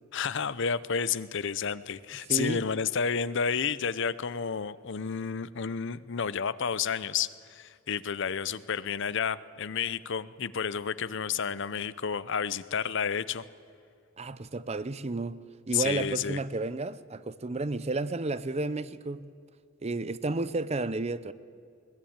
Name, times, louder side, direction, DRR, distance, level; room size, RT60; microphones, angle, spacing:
voice 1, 0.1-13.4 15.7-16.4, left 6 dB, 60° left, 0.7 m, -31 dB
voice 2, 2.3-2.7 14.2-15.4 15.7-19.3 19.8-21.3, right 2 dB, 30° right, 0.6 m, -32 dB
21.5 x 19.0 x 8.8 m
head